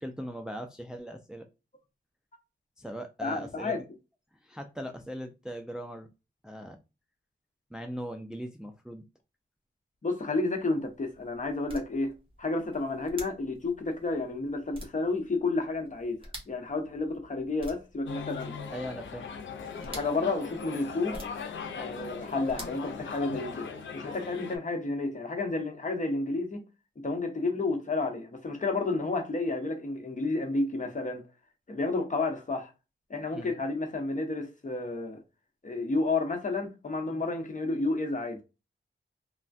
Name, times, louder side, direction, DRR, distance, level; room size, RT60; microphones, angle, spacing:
voice 1, 0.0-1.5 2.8-3.8 4.4-6.1 6.4-6.8 7.7-9.1 18.7-19.3 33.3-33.6, equal, 5° right, 0.4 m, -39 dB
voice 2, 3.2-3.8 10.0-18.5 19.8-21.2 21.7-23.7 23.9-26.6 27.0-31.3 31.7-32.7 33.1-35.2 35.6-38.4, left 3 dB, 40° left, 0.8 m, -31 dB
sound 1, 10.5-23.7, right 1 dB, 25° right, 1.2 m, -50 dB
sound 2, 18.1-24.6, left 6 dB, 80° left, 0.5 m, -39 dB
3.2 x 2.1 x 2.5 m
wide cardioid pair, 85°, 19 cm